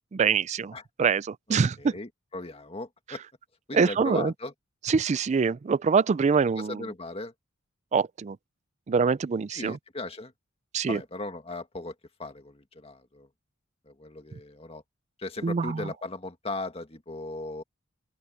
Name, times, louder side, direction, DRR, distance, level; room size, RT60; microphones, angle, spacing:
voice 1, 0.1-0.7 1.0-1.7 3.7-4.3 4.9-6.8 7.9-8.4 8.9-9.8 10.7-11.0 15.4-15.8, right 5 dB, 35° right, 0.3 m, -24 dB
voice 2, 1.5-3.2 3.7-4.5 6.6-7.3 9.5-10.3 10.9-11.9 12.2-13.3 13.9-14.8 15.2-17.6, left 2 dB, 30° left, 1.9 m, -37 dB
open air
head